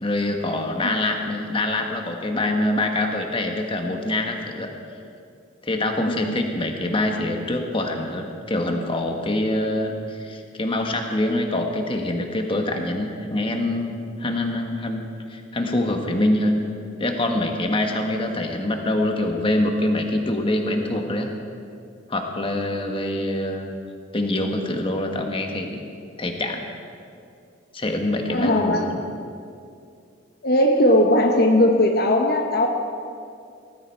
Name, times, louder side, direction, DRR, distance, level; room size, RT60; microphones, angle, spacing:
voice 1, 0.0-4.7 5.6-15.0 15.3-16.6 17.0-21.3 22.1-23.8 24.1-25.8 26.2-26.6 27.7-29.0, left 1 dB, 30° left, 3 dB, 1.5 m, -25 dB
voice 2, 6.1-6.4 28.3-28.9 30.4-32.7, left 1 dB, 55° left, 3 dB, 1.0 m, -19 dB
19.0 x 14.5 x 4.6 m, 2.4 s
head